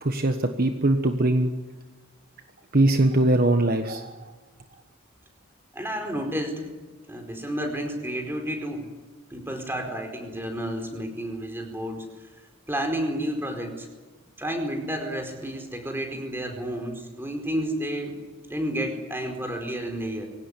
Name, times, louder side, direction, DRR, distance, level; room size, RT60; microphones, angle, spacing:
voice 1, 0.0-1.5 2.7-4.3, right 1 dB, 45° right, 6 dB, 1.3 m, -21 dB
voice 2, 5.7-6.7 7.1-8.9 9.3-12.0 12.7-13.9 14.4-18.2 18.5-20.3, equal, 10° right, 4 dB, 4.6 m, -31 dB
24.0 x 17.5 x 9.9 m, 1.2 s
head